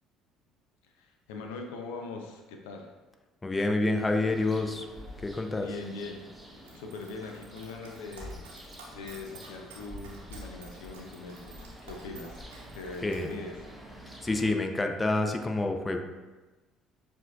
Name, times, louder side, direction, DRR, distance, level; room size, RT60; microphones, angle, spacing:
voice 1, 0.8-2.9 5.5-6.2 6.5-12.4 12.7-13.6, left 3 dB, 75° left, 3 dB, 0.5 m, -42 dB
voice 2, 3.4-4.9 5.2-5.7 13.0-13.3 14.2-16.0, left 2 dB, 20° left, 4 dB, 0.6 m, -28 dB
sound 1, 4.0-14.5, equal, 5° right, 0.8 m, -48 dB
Dog, 6.6-13.3, right 3 dB, 80° right, 0.8 m, -52 dB
7.2 x 2.6 x 2.3 m, 1.2 s
hypercardioid pair, 60°, 0 cm